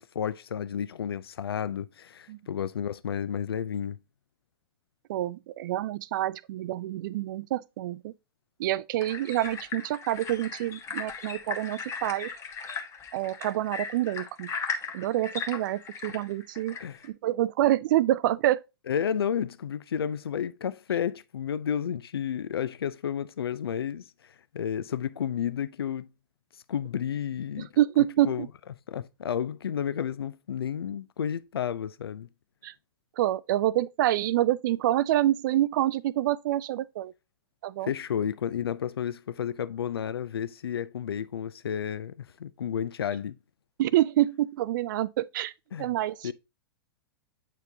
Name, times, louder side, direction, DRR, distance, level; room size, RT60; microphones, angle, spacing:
voice 1, 0.0-4.0 16.8-17.0 18.9-26.1 26.7-27.7 28.2-28.4 28.9-32.3 37.8-43.4 45.7-45.9 46.2-46.3, left 8 dB, 80° left, 0.4 m, -31 dB
voice 2, 5.1-8.1 8.6-12.3 13.1-14.5 14.9-16.8 17.0-18.6 27.6-28.5 32.6-32.7 33.2-37.1 37.6-37.9 43.8-45.5 45.8-46.3, right 14 dB, 55° right, 0.4 m, -27 dB
sound 1, 9.0-17.1, left 5 dB, 25° left, 1.0 m, -37 dB
8.1 x 4.4 x 2.7 m
hypercardioid pair, 110°, 12 cm